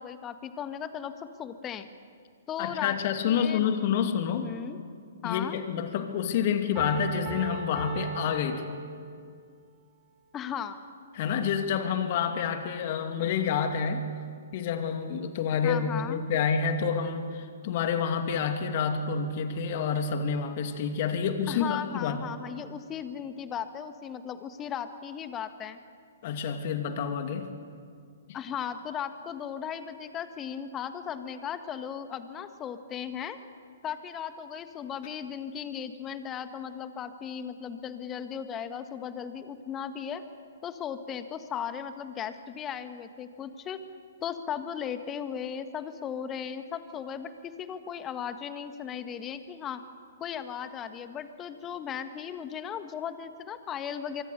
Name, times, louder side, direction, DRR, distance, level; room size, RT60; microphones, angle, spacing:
voice 1, 0.0-1.9 2.5-2.9 3.3-3.7 4.4-4.8 5.2-5.6 10.3-10.8 15.6-16.2 21.5-25.8 28.3-33.4 33.8-40.2 40.6-43.8 44.2-49.8 50.2-54.2, left 8 dB, 20° left, 10 dB, 1.5 m, -36 dB
voice 2, 2.6-4.5 5.2-8.8 11.1-14.1 14.5-22.2 26.2-27.6, left 7 dB, 45° left, 7 dB, 2.5 m, -28 dB
Piano, 6.8-9.3, right 5 dB, 15° right, 5.0 m, -39 dB
24.5 x 23.5 x 6.8 m, 2.2 s
figure-of-eight pair, 120°, 0 cm